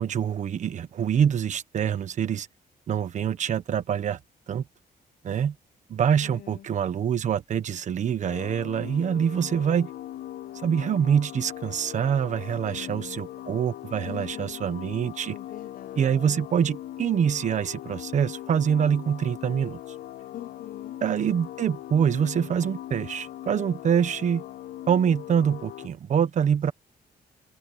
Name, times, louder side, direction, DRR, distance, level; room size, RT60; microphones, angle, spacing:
voice 1, 0.0-2.5 2.9-4.2 4.5-4.6 5.2-5.5 5.9-9.9 10.6-15.4 15.9-19.8 21.0-24.4 24.9-26.7, right 8 dB, 50° right, 1.3 m, -25 dB
voice 2, 6.2-6.7 12.6-13.2 14.0-14.6 15.3-16.4 20.3-21.0, left 12 dB, 60° left, 1.1 m, -44 dB
sound 1, 8.2-25.9, left 13 dB, 80° left, 0.6 m, -40 dB
cardioid pair, 160°, 16 cm